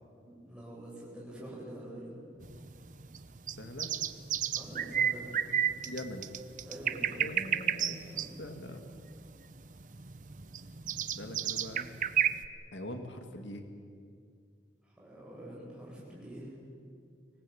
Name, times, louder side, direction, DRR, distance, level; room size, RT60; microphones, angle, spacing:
voice 1, 0.2-2.1 4.5-5.3 6.6-7.2 8.0-8.4 14.9-16.5, right 1 dB, 5° right, -5 dB, 8.0 m, -46 dB
sound 1, 2.4-12.5, right 9 dB, 45° right, 0.7 m, -32 dB
voice 2, 3.6-3.9 5.8-6.3 7.2-8.0 8.4-8.9 11.2-11.9 12.7-13.6, left 1 dB, 85° left, 6 dB, 2.1 m, -42 dB
25.0 x 19.0 x 8.6 m, 2.2 s
head